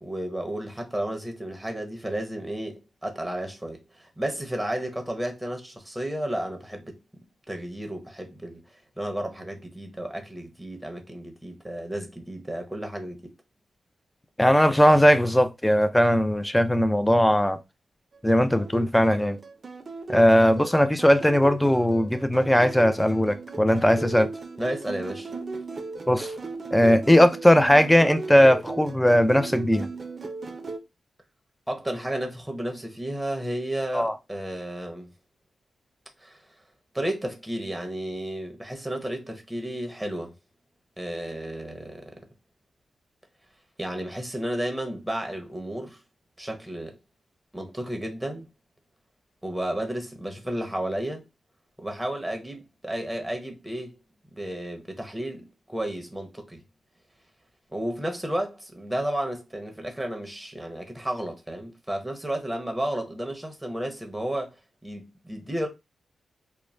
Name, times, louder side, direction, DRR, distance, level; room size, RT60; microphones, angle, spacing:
voice 1, 0.0-7.0 7.5-8.6 9.0-13.3 24.6-25.3 31.7-35.1 36.2-36.4 36.9-40.3 41.0-42.2 43.8-46.0 46.4-46.9 47.5-48.5 49.4-51.2 51.8-54.0 54.3-56.6 57.7-64.6 64.8-65.7, right 1 dB, 10° right, 0.8 m, -32 dB
voice 2, 14.4-17.6 18.2-19.4 20.1-24.3 26.1-26.3 26.7-29.9 33.9-34.1, equal, 10° left, 0.4 m, -19 dB
sound 1, 18.3-30.8, right 3 dB, 50° right, 0.6 m, -37 dB
2.4 x 2.1 x 3.1 m
cardioid pair, 50°, 0 cm